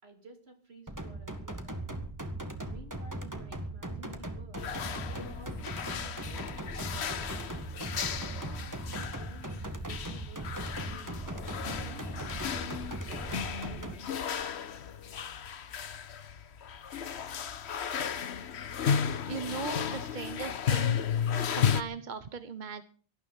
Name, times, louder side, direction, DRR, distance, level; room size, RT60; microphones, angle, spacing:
voice 1, 0.0-2.1 2.6-4.8 5.1-7.7 8.1-11.1 11.5-14.6, right 3 dB, 70° right, 5 dB, 3.2 m, -53 dB
sound 1, 0.9-13.9, right 1 dB, 15° right, 1.8 m, -39 dB
sound 2, 4.6-21.8, left 7 dB, 80° left, 1.2 m, -34 dB
voice 2, 19.0-21.0 21.5-22.8, right 6 dB, 50° right, 12 dB, 1.1 m, -39 dB
18.0 x 12.5 x 5.7 m, 0.43 s
omnidirectional pair, 1.1 m